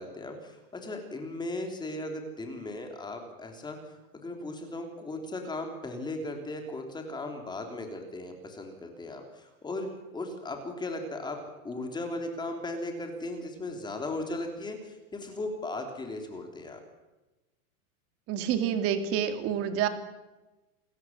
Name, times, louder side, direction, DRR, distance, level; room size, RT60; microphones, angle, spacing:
voice 1, 0.0-11.4 11.6-16.8, left 2 dB, 10° left, 4 dB, 3.4 m, -37 dB
voice 2, 18.3-19.9, right 9 dB, 35° right, 8 dB, 2.6 m, -28 dB
28.5 x 13.5 x 7.8 m, 1.1 s
supercardioid pair, 160°, 43 cm